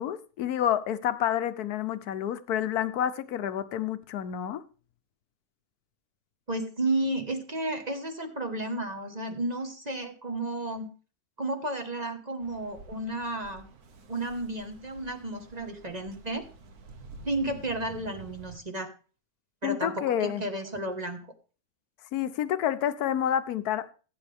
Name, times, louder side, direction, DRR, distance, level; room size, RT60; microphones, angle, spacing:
voice 1, 0.0-4.6 19.6-20.4 22.1-23.9, left 10 dB, 80° left, 1.3 m, -29 dB
voice 2, 6.5-10.9 11.4-13.6 14.1-16.4 17.2-18.9 19.6-21.3, right 2 dB, 30° right, 1.5 m, -32 dB
sound 1, 12.4-18.6, right 3 dB, 80° right, 1.7 m, -49 dB
16.5 x 9.0 x 3.5 m
omnidirectional pair, 1.6 m